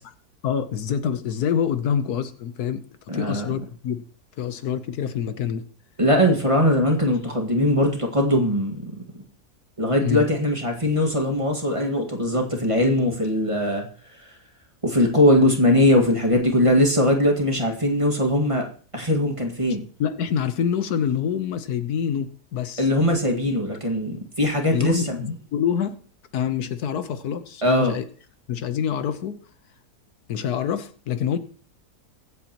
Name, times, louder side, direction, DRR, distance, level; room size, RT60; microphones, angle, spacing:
voice 1, 0.4-2.8 3.1-4.0 4.4-5.6 10.0-10.3 20.0-22.9 24.7-26.0 26.3-28.0 28.5-29.4 30.3-31.4, left 8 dB, 75° left, 11 dB, 1.4 m, -26 dB
voice 2, 3.1-3.5 6.0-8.9 9.8-13.9 14.8-18.6 18.9-19.8 22.8-25.2 27.6-28.0, left 1 dB, 20° right, 2 dB, 1.8 m, -20 dB
23.0 x 8.1 x 3.0 m, 0.42 s
omnidirectional pair, 1.7 m